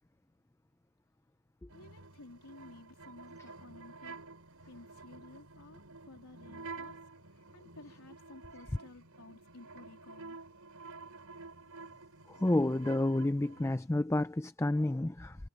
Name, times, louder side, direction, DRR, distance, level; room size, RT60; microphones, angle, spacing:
voice 1, 1.7-4.2 4.7-10.4, left 2 dB, 85° left, 3.2 m, -54 dB
sound 1, 1.7-13.8, right 3 dB, 70° right, 6.8 m, -50 dB
voice 2, 12.4-15.4, left 1 dB, 10° left, 0.5 m, -30 dB
head